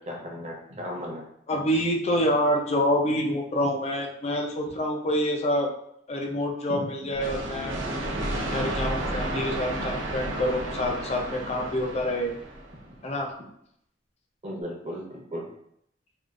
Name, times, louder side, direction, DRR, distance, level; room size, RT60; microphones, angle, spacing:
voice 1, 0.1-1.2 6.7-6.8 12.9-13.0 14.4-15.5, equal, 35° right, -2 dB, 0.8 m, -36 dB
voice 2, 1.5-5.7 6.1-7.7 8.5-12.3 13.0-13.3, equal, 35° left, 1 dB, 0.5 m, -27 dB
sound 1, 7.1-12.8, right 1 dB, 80° right, 0.7 m, -32 dB
3.6 x 2.4 x 2.4 m, 0.72 s
head